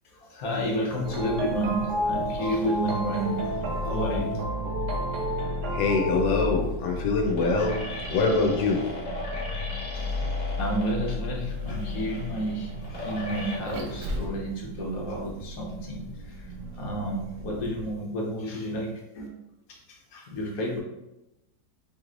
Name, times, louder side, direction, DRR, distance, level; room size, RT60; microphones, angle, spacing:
voice 1, 0.2-3.5 3.8-4.4 10.6-19.3 19.7-20.8, equal, 60° left, -1 dB, 1.3 m, -31 dB
sound 1, 1.0-6.3, right 1 dB, 65° right, 0.8 m, -31 dB
Vehicle, 1.0-17.9, left 2 dB, 80° right, 1.3 m, -35 dB
voice 2, 5.7-7.8 8.1-8.8, left 4 dB, 90° left, 1 dB, 1.4 m, -24 dB
sound 2, 6.8-13.6, left 1 dB, 35° left, 0.8 m, -38 dB
4.9 x 3.1 x 2.5 m, 0.96 s
omnidirectional pair, 1.8 m